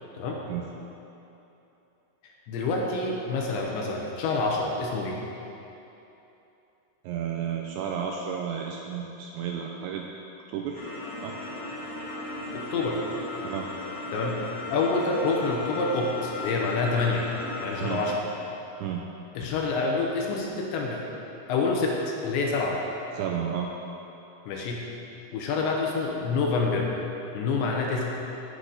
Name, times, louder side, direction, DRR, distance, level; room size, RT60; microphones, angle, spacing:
voice 1, 2.5-5.2 12.5-13.0 14.1-14.4 14.7-17.3 17.6-18.2 19.3-21.1 21.5-22.8 24.5-24.8 25.3-26.9 27.3-28.2, left 3 dB, 75° left, -1 dB, 3.0 m, -27 dB
voice 2, 7.0-10.1 10.5-10.8 11.2-11.3 13.4-13.7 17.8-18.0 18.8-19.0 23.1-23.7, right 8 dB, 85° right, 1 dB, 2.6 m, -32 dB
sound 1, 10.7-18.1, left 2 dB, 45° left, 2.1 m, -36 dB
18.0 x 8.2 x 4.0 m, 3.0 s
omnidirectional pair, 5.8 m